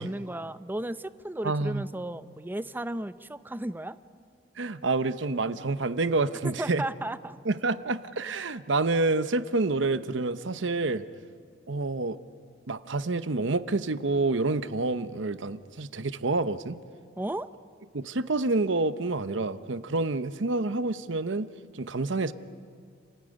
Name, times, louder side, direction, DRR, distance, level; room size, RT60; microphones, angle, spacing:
voice 1, 0.0-4.0 6.4-7.4 17.2-17.5, right 1 dB, 10° right, 14 dB, 0.6 m, -34 dB
voice 2, 1.4-1.9 4.6-6.8 7.4-11.1 11.7-12.2 12.7-16.8 17.9-21.5 21.7-22.3, right 3 dB, 75° right, 13 dB, 0.9 m, -28 dB
30.0 x 16.0 x 10.0 m, 2.2 s
head